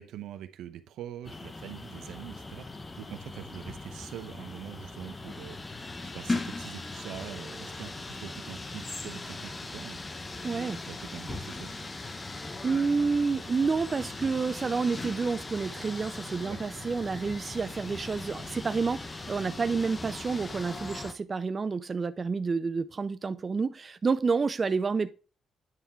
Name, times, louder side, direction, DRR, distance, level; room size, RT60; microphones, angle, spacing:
voice 1, 0.0-10.0 10.5-11.8 16.4-16.6, right 11 dB, 80° right, 0.8 m, -44 dB
sound 1, 1.2-21.1, left 3 dB, 25° left, 0.8 m, -39 dB
voice 2, 10.4-10.8 12.6-25.1, right 4 dB, 35° right, 0.4 m, -29 dB
9.4 x 3.5 x 4.4 m
cardioid pair, 90°, 0 cm